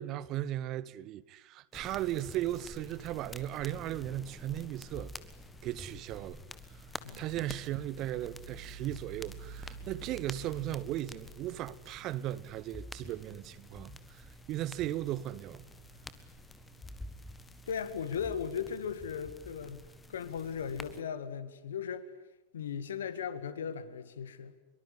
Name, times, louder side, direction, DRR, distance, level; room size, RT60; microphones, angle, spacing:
voice 1, 0.0-5.1 5.6-6.4 7.2-15.6, right 13 dB, 35° right, 0.9 m, -37 dB
sound 1, 1.7-21.0, left 2 dB, 10° left, 1.6 m, -49 dB
sound 2, 3.0-19.1, right 4 dB, 85° right, 5.1 m, -54 dB
voice 2, 17.7-19.8 20.1-22.0 22.5-24.5, left 7 dB, 65° left, 2.0 m, -37 dB
24.5 x 23.5 x 9.9 m
figure-of-eight pair, 90°, 0 cm